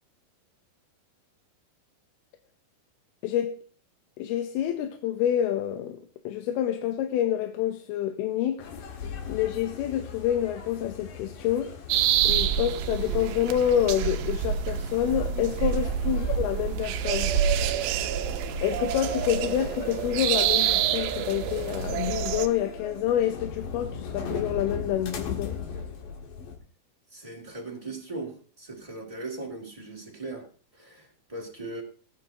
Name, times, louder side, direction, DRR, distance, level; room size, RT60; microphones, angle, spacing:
voice 1, 3.2-3.6 4.2-6.0 6.2-8.7 9.3-11.7 12.2-17.3 18.6-25.6, left 10 dB, 90° left, 2.9 m, -27 dB
sound 1, 8.6-26.6, left 5 dB, 65° left, 3.3 m, -39 dB
sound 2, 11.9-22.5, right 9 dB, 80° right, 2.6 m, -27 dB
voice 2, 27.1-30.5 30.7-31.8, right 2 dB, 10° right, 2.1 m, -39 dB
18.5 x 10.5 x 2.9 m
omnidirectional pair, 4.4 m